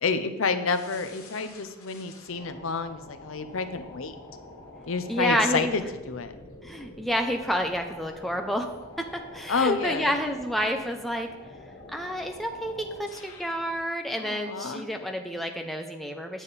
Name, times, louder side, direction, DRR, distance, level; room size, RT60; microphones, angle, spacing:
voice 1, 0.0-4.1 4.9-6.3 9.5-10.1 14.2-14.8, left 4 dB, 70° left, 10 dB, 0.7 m, -29 dB
sound 1, 0.7-13.8, left 2 dB, 90° left, 1.8 m, -47 dB
voice 2, 5.1-5.7 6.6-8.7 9.0-11.3 11.9-16.4, equal, ahead, 4 dB, 0.7 m, -29 dB
9.8 x 7.3 x 4.1 m, 1.1 s
head